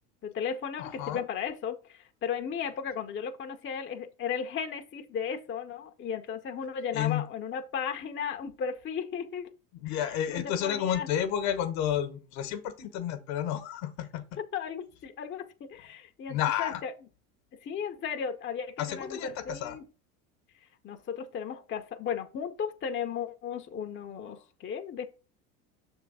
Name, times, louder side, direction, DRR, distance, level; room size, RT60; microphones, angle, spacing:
voice 1, 0.2-9.5 9.9-11.1 14.5-16.9 17.6-19.8 20.8-25.1, left 7 dB, 25° left, 0.8 m, -35 dB
voice 2, 0.8-1.2 6.9-7.2 9.7-14.4 16.3-16.8 18.8-19.8, left 10 dB, 60° left, 1.2 m, -31 dB
6.9 x 3.6 x 4.9 m
hypercardioid pair, 80°, 46 cm